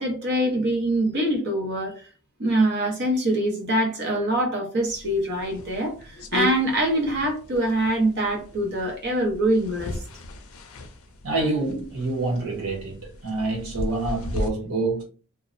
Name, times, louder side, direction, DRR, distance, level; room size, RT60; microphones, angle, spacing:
voice 1, 0.0-2.0 2.4-10.0, right 1 dB, 50° right, 0.8 m, -24 dB
sound 1, 4.9-14.5, left 2 dB, 65° left, 0.5 m, -36 dB
voice 2, 11.2-15.0, right 2 dB, 80° right, 1.0 m, -27 dB
2.6 x 2.0 x 2.5 m
head